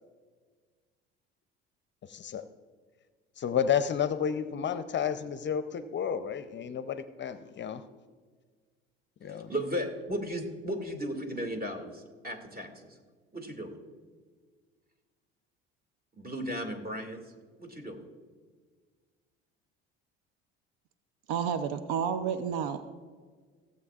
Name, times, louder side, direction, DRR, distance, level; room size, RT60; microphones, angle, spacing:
voice 1, 2.0-2.4 3.4-7.8 9.2-9.5, left 8 dB, 35° left, 12 dB, 0.6 m, -31 dB
voice 2, 9.3-12.9 13.3-13.7 16.2-17.2 17.6-18.0, equal, 30° right, 4 dB, 2.2 m, -35 dB
voice 3, 21.3-22.8, right 7 dB, 70° right, 11 dB, 0.7 m, -30 dB
17.5 x 7.8 x 2.4 m, 1.5 s
hypercardioid pair, 70°, 30 cm